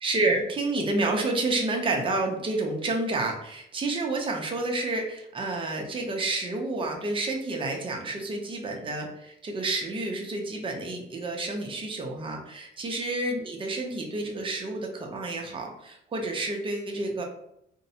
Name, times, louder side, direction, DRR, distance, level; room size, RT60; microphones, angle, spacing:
voice 1, 0.0-17.2, right 2 dB, 25° right, 1 dB, 0.6 m, -29 dB
2.5 x 2.0 x 2.7 m, 0.77 s
cardioid pair, 90°, 20 cm